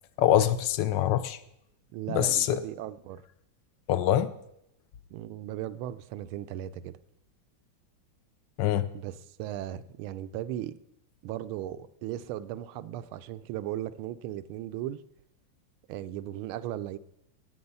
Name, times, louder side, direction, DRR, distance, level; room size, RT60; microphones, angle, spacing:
voice 1, 0.2-1.4 2.1-2.6 3.9-4.3 8.6-8.9, left 11 dB, 75° left, 1.1 m, -24 dB
voice 2, 1.9-3.2 5.1-6.9 8.9-10.7 11.2-15.0 15.9-17.0, right 12 dB, 85° right, 1.4 m, -37 dB
16.5 x 6.3 x 5.4 m
omnidirectional pair, 2.3 m